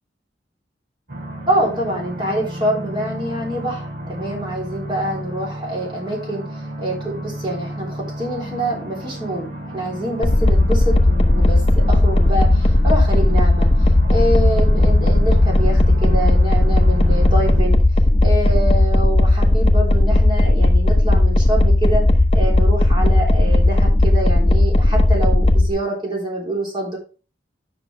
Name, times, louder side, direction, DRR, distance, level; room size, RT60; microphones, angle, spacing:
sound 1, 1.1-17.6, right 1 dB, 70° right, 2.6 m, -32 dB
voice 1, 1.5-22.1 22.3-27.0, right 1 dB, 25° right, -3 dB, 3.4 m, -26 dB
sound 2, 10.2-25.7, left 1 dB, 30° left, 0.8 m, -15 dB
9.8 x 6.1 x 3.4 m, 0.35 s
head